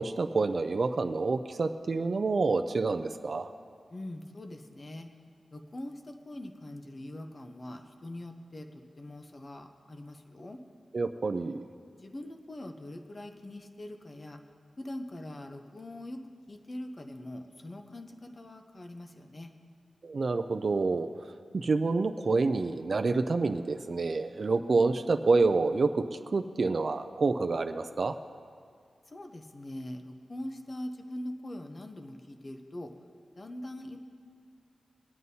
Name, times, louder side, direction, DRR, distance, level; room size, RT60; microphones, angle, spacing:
voice 1, 0.0-3.5 10.9-11.6 20.0-21.1 21.5-28.2, right 3 dB, 45° right, 7 dB, 0.4 m, -28 dB
voice 2, 3.9-5.1 5.5-10.6 12.0-14.4 14.8-16.2 16.5-19.5 29.1-32.9 33.4-34.0, left 1 dB, 30° left, 5 dB, 0.7 m, -42 dB
24.5 x 9.3 x 2.8 m, 2.3 s
wide cardioid pair, 145°, 0 cm